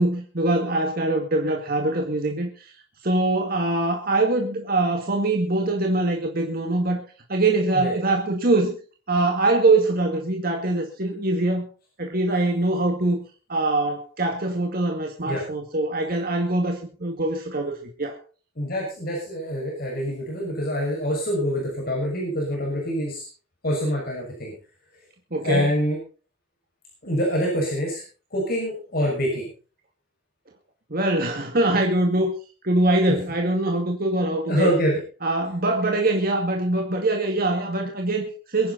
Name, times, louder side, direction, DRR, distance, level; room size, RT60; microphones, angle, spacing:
voice 1, 0.0-2.7 3.0-7.0 7.3-8.8 9.1-11.7 12.0-13.2 13.5-18.2 25.3-25.7 30.9-32.3 32.6-34.7 35.2-38.7, right 2 dB, 50° right, 2 dB, 2.2 m, -23 dB
voice 2, 18.6-23.3 23.6-24.5 25.4-26.0 27.0-28.0 28.3-29.4 34.5-34.9, equal, 50° left, -2 dB, 6.3 m, -25 dB
23.0 x 10.5 x 4.2 m, 0.37 s
head